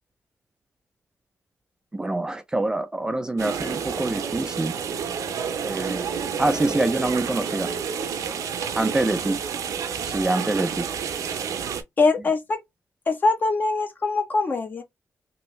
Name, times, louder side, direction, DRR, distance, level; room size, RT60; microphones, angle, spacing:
voice 1, 1.9-4.7 5.6-6.1 6.4-7.7 8.8-9.4 10.1-10.9, right 2 dB, 15° right, 0.3 m, -25 dB
sound 1, 3.4-11.8, right 7 dB, 90° right, 0.7 m, -29 dB
voice 2, 12.0-12.6 13.1-14.8, left 3 dB, 35° left, 0.8 m, -22 dB
3.1 x 2.6 x 3.1 m
wide cardioid pair, 150°, 6 cm